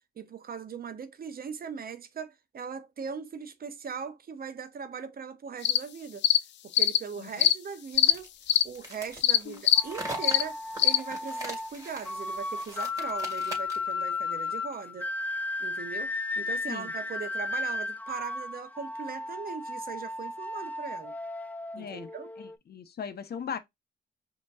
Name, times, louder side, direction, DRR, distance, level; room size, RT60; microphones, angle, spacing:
voice 1, 0.2-6.2 6.8-8.3 8.6-15.1 15.6-21.1 21.8-22.3, right 6 dB, 55° right, 0.8 m, -39 dB
sound 1, 5.6-5.8 6.2-6.4 6.7-7.0 7.4-7.5 8.0-8.1 8.5-8.6 9.2-9.4 9.7-9.8 10.2-10.4 10.8-11.0, left 12 dB, 80° left, 0.4 m, -21 dB
sound 2, 8.0-13.9, right 2 dB, 20° right, 2.2 m, -42 dB
sound 3, 9.8-22.6, left 3 dB, 10° left, 0.4 m, -35 dB
voice 2, 21.7-22.1 22.4-23.6, left 7 dB, 65° left, 0.8 m, -39 dB
5.1 x 3.0 x 2.4 m
cardioid pair, 70°, 18 cm